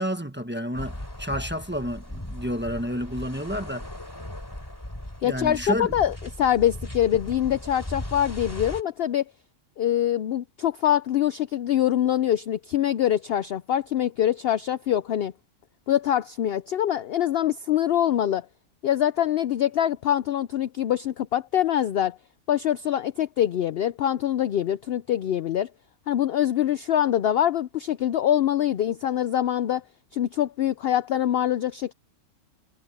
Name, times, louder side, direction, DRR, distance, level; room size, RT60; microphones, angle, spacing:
voice 1, 0.0-3.9 5.2-5.9, equal, 10° right, 1.2 m, -30 dB
sound 1, 0.7-8.8, left 1 dB, 15° left, 3.2 m, -37 dB
voice 2, 5.2-9.2 9.8-15.3 15.9-18.5 18.8-22.2 22.5-25.7 26.1-29.8 30.1-31.9, left 11 dB, 60° left, 0.6 m, -24 dB
omnidirectional pair, 1.4 m